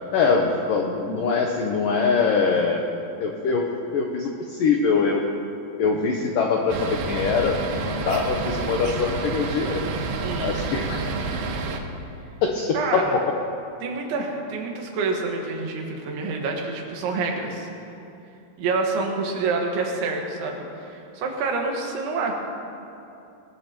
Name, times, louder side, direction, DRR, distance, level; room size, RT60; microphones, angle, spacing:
voice 1, 0.1-2.9 3.2-3.6 3.9-5.2 5.8-9.9 10.4-11.0 12.4-13.2, left 5 dB, 85° left, 1 dB, 1.9 m, -23 dB
sound 1, 6.7-11.8, right 4 dB, 70° right, 2.4 m, -29 dB
voice 2, 10.2-10.7 12.7-13.1 13.8-17.7 18.6-22.3, right 4 dB, 90° right, 1 dB, 4.0 m, -27 dB
20.5 x 20.0 x 3.0 m, 2.7 s
omnidirectional pair, 5.2 m